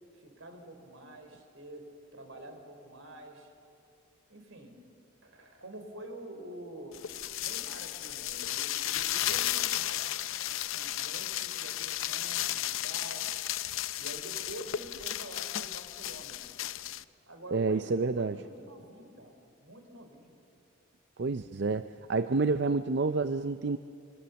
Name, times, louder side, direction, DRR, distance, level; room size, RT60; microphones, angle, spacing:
voice 1, 0.1-3.5 4.3-4.8 5.2-7.0 7.4-10.1 10.5-13.3 13.9-16.4 17.3-20.4, right 1 dB, 75° right, 5 dB, 4.0 m, -47 dB
sound 1, 6.9-17.0, left 13 dB, 75° left, 0.6 m, -34 dB
voice 2, 17.5-18.4 21.2-23.8, right 3 dB, 55° right, 11 dB, 0.5 m, -29 dB
26.0 x 25.0 x 7.0 m, 2.5 s
head